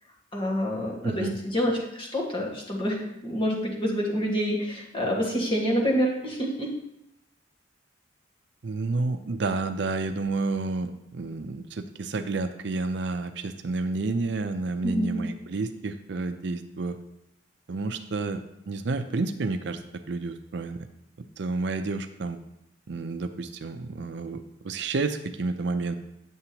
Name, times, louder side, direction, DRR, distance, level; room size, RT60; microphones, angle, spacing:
voice 1, 0.3-6.7 14.8-15.2, equal, 25° left, -2 dB, 1.6 m, -27 dB
voice 2, 1.0-1.4 8.6-17.0 17.7-18.4 18.7-19.8 20.1-20.9 21.4-22.4 22.9-25.9, right 3 dB, 60° right, 8 dB, 0.5 m, -30 dB
9.4 x 6.9 x 2.9 m, 0.84 s
head